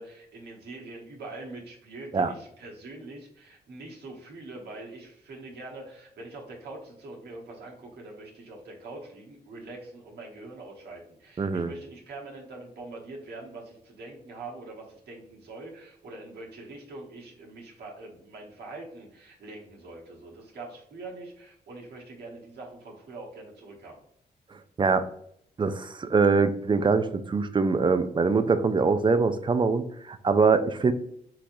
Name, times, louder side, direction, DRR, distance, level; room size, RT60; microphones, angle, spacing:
voice 1, 0.0-24.0, right 2 dB, 80° right, -2 dB, 1.1 m, -43 dB
voice 2, 11.4-11.7 24.8-25.0 25.6-30.9, right 4 dB, 30° right, 10 dB, 0.4 m, -23 dB
3.7 x 3.0 x 2.6 m, 0.69 s
cardioid pair, 65°, 17 cm